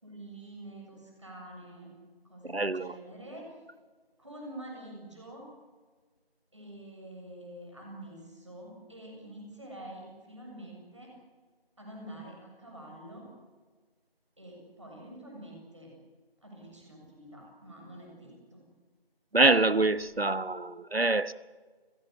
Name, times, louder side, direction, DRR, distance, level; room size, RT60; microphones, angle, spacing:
voice 1, 0.0-1.9 2.2-3.5 4.2-5.5 6.5-11.1 11.8-13.3 14.4-15.9 16.4-18.6, right 1 dB, 30° right, -1 dB, 7.4 m, -47 dB
voice 2, 2.5-2.9 19.3-21.3, right 2 dB, 75° right, 15 dB, 1.3 m, -25 dB
29.5 x 17.0 x 8.2 m, 1.4 s
figure-of-eight pair, 175°, 31 cm